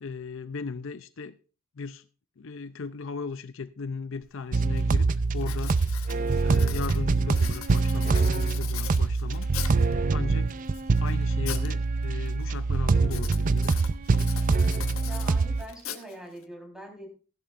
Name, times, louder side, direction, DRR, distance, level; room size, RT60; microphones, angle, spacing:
voice 1, 0.0-1.4 1.8-2.0 2.4-5.1 5.3-5.8 6.4-9.5 10.1-10.5 11.0-13.6, left 4 dB, 65° left, 0.6 m, -37 dB
Writing, 4.2-4.3 4.8-5.0 5.4-9.9 10.5-11.7 12.0-12.4 13.0-16.4, left 10 dB, 85° left, 1.3 m, -41 dB
sound 1, 4.5-15.6, right 3 dB, 40° right, 0.5 m, -24 dB
voice 2, 15.0-17.1, right 1 dB, 5° right, 4.0 m, -43 dB
15.5 x 11.0 x 2.5 m
head